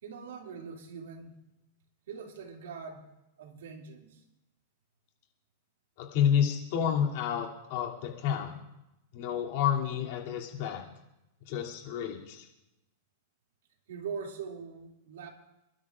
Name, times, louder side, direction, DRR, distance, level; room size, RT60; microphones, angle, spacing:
voice 1, 0.0-1.3 2.1-3.1 3.4-4.2 13.9-15.3, right 6 dB, 85° right, 2.5 m, -42 dB
voice 2, 6.0-8.5 9.1-10.8 11.5-12.5, left 8 dB, 55° left, 2.7 m, -29 dB
28.5 x 12.5 x 2.5 m
supercardioid pair, 155°, 0 cm